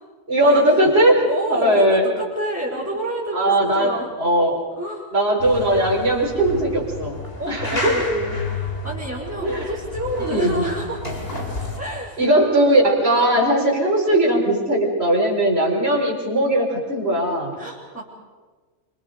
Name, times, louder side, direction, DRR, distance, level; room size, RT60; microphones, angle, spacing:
voice 1, 0.3-2.1 3.3-4.6 5.1-7.2 7.5-8.0 9.4-9.7 10.2-10.6 12.2-17.6, right 1 dB, 50° right, -3 dB, 5.2 m, -19 dB
voice 2, 1.2-4.1 4.8-5.1 7.4-11.2 11.8-12.2 13.1-13.4 17.6-18.0, right 1 dB, 10° right, -7 dB, 4.7 m, -29 dB
sound 1, 5.4-11.8, left 2 dB, 45° left, 3.8 m, -30 dB
28.0 x 26.5 x 5.2 m, 1.4 s
omnidirectional pair, 1.4 m